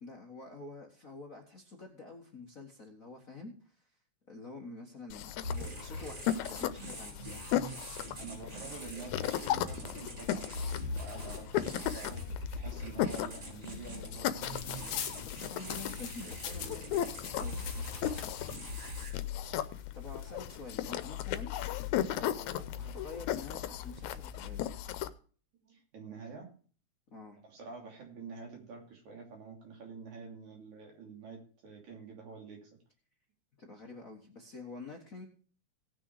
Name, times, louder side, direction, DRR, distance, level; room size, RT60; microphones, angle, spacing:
voice 1, 0.0-3.9 4.3-7.2 14.2-14.3 15.2-17.9 19.9-21.5 22.1-24.7 27.1-27.4 33.6-35.2, left 3 dB, 45° left, 1 dB, 1.2 m, -48 dB
sound 1, 5.1-25.1, left 11 dB, 80° left, 2.1 m, -36 dB
sound 2, 5.4-19.1, left 1 dB, 45° right, 5.1 m, -42 dB
voice 2, 8.2-12.3 12.5-14.9 25.7-26.5 27.5-32.7, right 5 dB, 80° right, 1 dB, 4.3 m, -48 dB
sound 3, 14.4-18.6 19.5-19.6 19.8-20.8 21.5-21.9, left 9 dB, 60° left, 1.4 m, -43 dB
17.5 x 6.3 x 4.7 m, 0.41 s
omnidirectional pair, 3.3 m